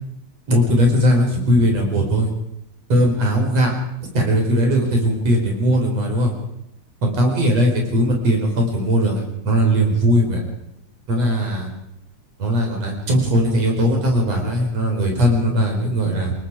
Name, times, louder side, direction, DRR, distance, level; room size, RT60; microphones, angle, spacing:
voice 1, 0.5-2.3 2.9-3.7 4.1-6.3 7.0-10.4 11.1-11.7 12.4-16.3, equal, 55° right, 1 dB, 5.9 m, -19 dB
29.5 x 18.5 x 5.0 m, 0.81 s
omnidirectional pair, 3.4 m